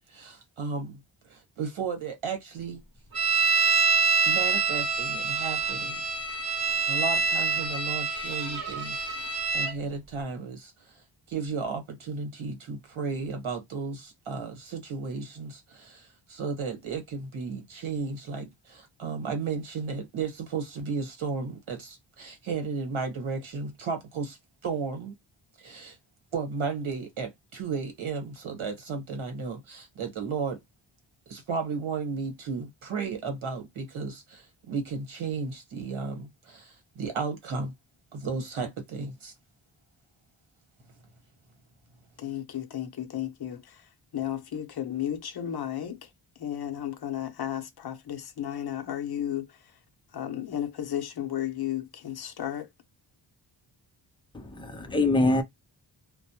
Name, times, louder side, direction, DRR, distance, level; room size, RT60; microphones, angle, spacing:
voice 1, 0.1-1.0 1.3-2.8 4.2-6.0 6.9-25.1 25.6-26.0 26.3-30.6 31.3-37.7 38.1-39.3, right 5 dB, 75° right, 1.2 m, -34 dB
sound 1, 3.1-9.7, right 4 dB, 50° right, 1.0 m, -26 dB
voice 2, 42.2-43.8 44.1-46.0 46.4-49.5 50.1-52.7, left 11 dB, 50° left, 0.6 m, -33 dB
voice 3, 54.3-55.4, left 2 dB, 10° left, 0.5 m, -24 dB
2.1 x 2.1 x 2.7 m
wide cardioid pair, 115°, 48 cm